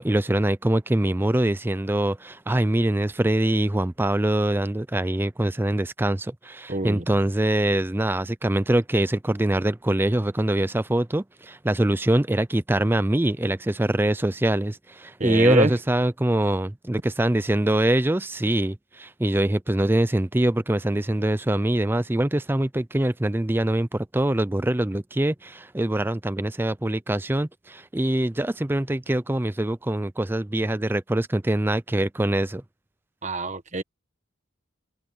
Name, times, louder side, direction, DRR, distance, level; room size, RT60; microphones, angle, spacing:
voice 1, 0.0-32.6, right 1 dB, 10° right, 0.4 m, -24 dB
voice 2, 6.7-7.0 15.2-15.7 33.2-33.8, right 2 dB, 35° right, 1.3 m, -24 dB
head